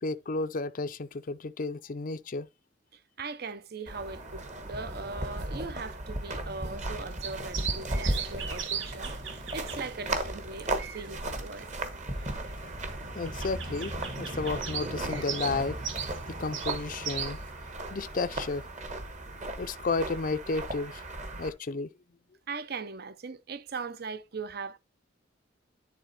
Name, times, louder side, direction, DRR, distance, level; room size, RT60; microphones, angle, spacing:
voice 1, 0.0-2.5 13.1-15.8 16.3-17.4 17.9-18.6 19.6-21.0 21.4-21.9, left 3 dB, 45° left, 0.5 m, -32 dB
voice 2, 2.9-11.7 22.5-24.8, right 4 dB, 55° right, 0.7 m, -40 dB
sound 1, 3.9-21.5, right 1 dB, 40° right, 1.4 m, -36 dB
sound 2, 7.2-17.5, right 8 dB, 75° right, 1.3 m, -39 dB
10.5 x 4.0 x 4.2 m
head